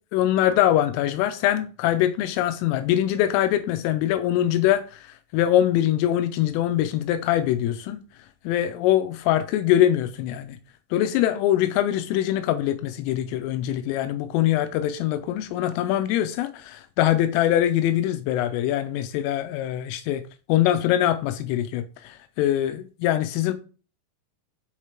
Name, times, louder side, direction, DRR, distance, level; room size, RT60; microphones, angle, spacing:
voice 1, 0.1-8.0 8.4-10.6 10.9-20.2 20.5-23.5, left 12 dB, 85° left, 3.2 m, -23 dB
7.4 x 4.9 x 4.4 m
omnidirectional pair, 5.9 m